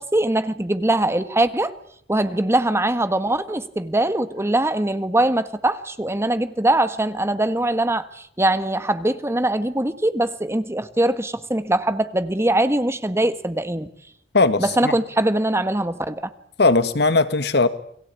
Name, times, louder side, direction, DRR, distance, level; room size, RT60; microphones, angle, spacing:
voice 1, 0.0-1.7 2.1-13.9 14.6-16.3, right 1 dB, 15° right, 1.5 m, -22 dB
voice 2, 14.3-14.9 16.6-17.7, left 3 dB, 65° left, 1.8 m, -18 dB
30.0 x 22.5 x 8.5 m
head